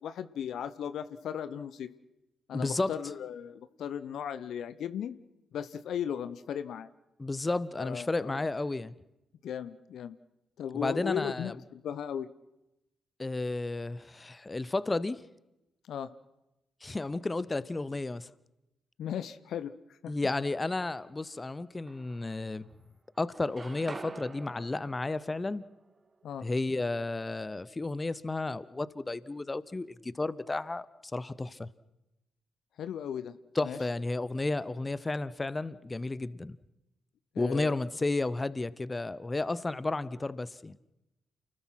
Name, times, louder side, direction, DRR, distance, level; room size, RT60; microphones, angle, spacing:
voice 1, 0.0-1.9 2.5-5.2 5.5-6.9 7.8-8.5 9.4-10.2 10.6-12.3 15.8-16.1 19.0-20.1 26.2-26.5 32.8-33.4 33.6-33.8 37.3-37.8, left 9 dB, 65° left, 0.8 m, -37 dB
voice 2, 2.5-2.9 7.2-8.9 10.7-11.5 13.2-15.2 16.8-18.3 20.1-22.7 23.2-25.6 26.4-30.9 31.1-31.7 33.6-36.6 37.4-40.8, left 2 dB, 25° left, 1.0 m, -32 dB
sound 1, 20.4-21.3 21.9-22.9 23.1-27.1, right 3 dB, 35° right, 2.0 m, -49 dB
29.0 x 19.5 x 5.9 m
hypercardioid pair, 40°, 0 cm